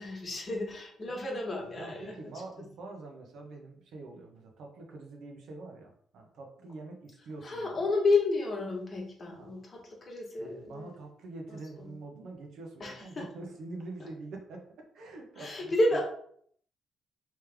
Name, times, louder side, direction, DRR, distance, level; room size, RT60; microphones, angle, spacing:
voice 1, 0.0-2.2 7.4-10.9 11.5-11.6 12.8-13.2 15.4-16.0, left 2 dB, 35° left, -1 dB, 1.3 m, -31 dB
voice 2, 1.8-7.8 9.3-9.5 10.4-16.0, right 3 dB, 75° right, 2 dB, 0.9 m, -45 dB
3.3 x 3.1 x 3.4 m, 0.63 s
cardioid pair, 90°, 0 cm